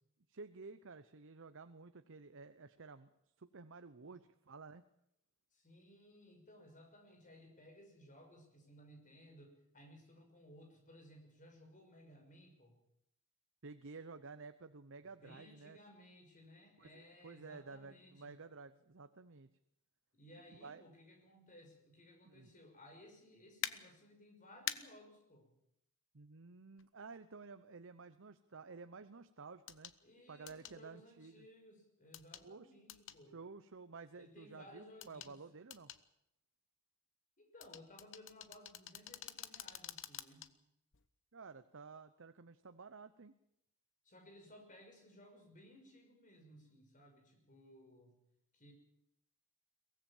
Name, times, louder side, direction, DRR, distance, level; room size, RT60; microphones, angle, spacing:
voice 1, 0.3-3.1 3.4-4.9 13.6-15.8 16.8-19.5 20.5-20.8 22.2-22.5 26.1-29.9 30.3-31.5 32.4-32.7 33.3-35.9 41.3-43.3, right 4 dB, 60° right, 10 dB, 0.8 m, -53 dB
voice 2, 5.5-12.7 15.0-18.4 20.1-25.5 30.0-33.4 34.1-35.4 37.4-40.5 44.0-48.2 48.5-48.7, left 1 dB, 35° left, 3 dB, 5.9 m, -60 dB
sound 1, 23.6-23.7 24.7-24.8 26.8-26.9 29.7-30.0 30.5-30.8 32.1-32.5 32.9-33.2 35.0-35.3 35.7-36.0 37.6-40.5 40.9-41.1, left 11 dB, 60° left, 1.0 m, -45 dB
23.0 x 18.0 x 7.2 m, 0.79 s
head